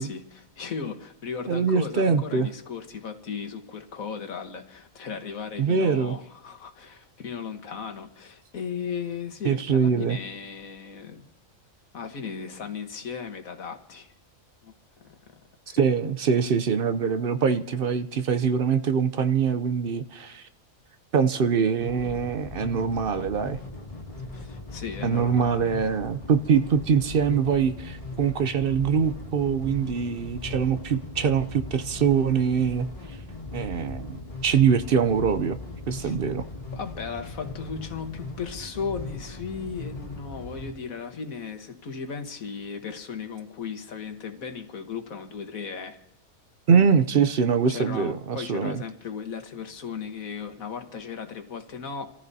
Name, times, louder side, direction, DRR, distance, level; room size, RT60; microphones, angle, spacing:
voice 1, 0.0-11.3 11.9-14.1 14.6-15.2 15.7-15.9 24.3-25.7 36.0-36.2 36.7-46.0 47.7-52.1, left 6 dB, 85° left, 6 dB, 1.8 m, -36 dB
voice 2, 1.5-2.5 5.6-6.2 9.4-10.2 15.7-20.4 21.1-23.6 25.0-32.9 33.5-35.6 35.9-36.4 46.7-48.8, right 6 dB, 55° right, 11 dB, 0.7 m, -23 dB
sound 1, 21.8-40.7, left 2 dB, 25° left, 2.4 m, -39 dB
28.0 x 14.5 x 2.8 m, 0.84 s
omnidirectional pair, 1.4 m